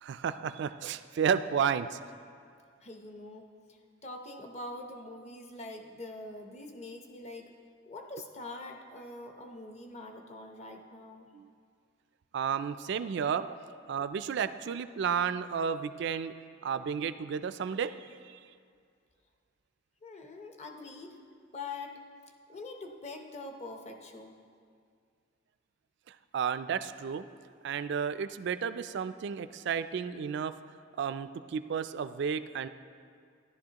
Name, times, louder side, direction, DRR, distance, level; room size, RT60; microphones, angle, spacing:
voice 1, 0.0-2.0 11.3-11.5 12.3-13.5 13.9-16.3 16.6-18.4 26.1-27.3 27.6-30.5 31.0-32.7, right 7 dB, 60° right, 12 dB, 0.3 m, -32 dB
voice 2, 2.8-7.5 7.9-11.3 20.0-21.2 21.5-22.0 22.5-24.4, left 2 dB, 35° left, 3 dB, 0.8 m, -44 dB
13.0 x 11.0 x 2.9 m, 2.2 s
head